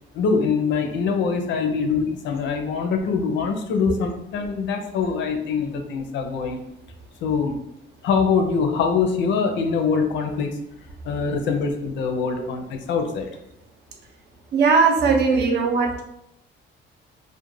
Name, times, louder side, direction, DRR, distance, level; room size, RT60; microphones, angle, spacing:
voice 1, 0.1-6.6 7.2-7.6 8.0-10.6 11.0-13.3, left 5 dB, 70° left, 5 dB, 0.5 m, -23 dB
voice 2, 14.5-16.0, right 5 dB, 60° right, 3 dB, 0.5 m, -18 dB
2.3 x 2.1 x 3.1 m, 0.79 s
cardioid pair, 125°, 20 cm